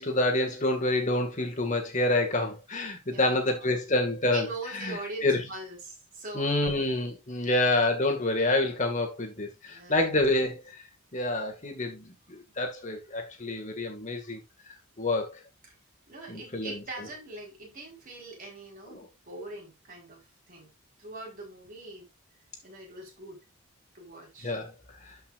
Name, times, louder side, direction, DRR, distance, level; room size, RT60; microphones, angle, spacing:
voice 1, 0.0-4.5 4.7-5.4 6.3-10.6 11.1-14.4 15.0-15.3 16.3-16.8 18.9-19.1 24.4-24.7 25.0-25.2, left 2 dB, 35° left, 2.0 m, -27 dB
voice 2, 3.1-3.6 4.3-6.7 7.4-7.6 9.5-10.1 15.6-15.7 16.1-20.7 21.0-22.1 22.6-23.4 23.9-24.6, right 2 dB, 40° right, 4.3 m, -42 dB
13.0 x 5.6 x 2.6 m
head